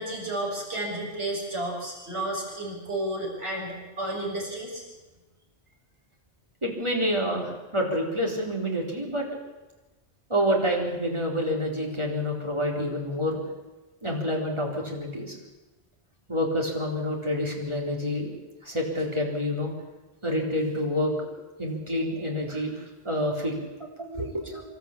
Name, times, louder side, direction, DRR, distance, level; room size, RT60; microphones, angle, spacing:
voice 1, 0.0-4.8, right 1 dB, 70° right, -2 dB, 7.0 m, -32 dB
voice 2, 6.6-9.3 10.3-13.4 14.0-15.4 16.3-18.3 18.6-19.7 20.2-21.1 21.6-23.6 24.0-24.6, equal, 25° right, -1 dB, 4.1 m, -28 dB
26.0 x 13.0 x 8.6 m, 1.1 s
omnidirectional pair, 1.1 m